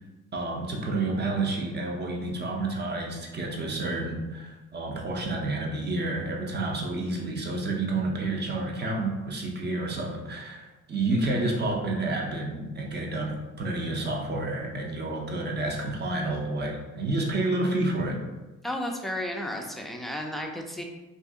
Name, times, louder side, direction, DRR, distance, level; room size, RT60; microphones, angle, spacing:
voice 1, 0.3-18.2, right 2 dB, 35° right, 0 dB, 0.7 m, -29 dB
voice 2, 18.6-20.8, left 1 dB, ahead, 1 dB, 0.4 m, -33 dB
2.6 x 2.5 x 3.6 m, 1.1 s
cardioid pair, 90°, 30 cm